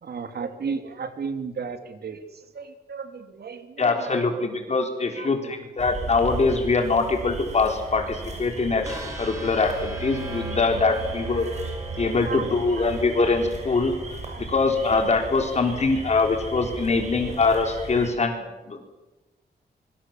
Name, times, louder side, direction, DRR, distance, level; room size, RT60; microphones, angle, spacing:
voice 1, 0.0-4.5 5.2-5.6 12.2-12.9 14.2-14.4 17.2-17.3, right 5 dB, 75° right, 8 dB, 2.8 m, -35 dB
voice 2, 3.8-11.5 12.0-13.9 14.4-18.8, left 3 dB, 40° left, 4 dB, 4.1 m, -23 dB
frogs sliding screen twig snapping traffic, 5.8-18.1, right 3 dB, 45° right, 5.7 m, -37 dB
sound 1, 8.8-14.9, right 2 dB, 20° right, 7.3 m, -37 dB
26.0 x 24.0 x 7.6 m, 1.1 s
wide cardioid pair, 170°, 17 cm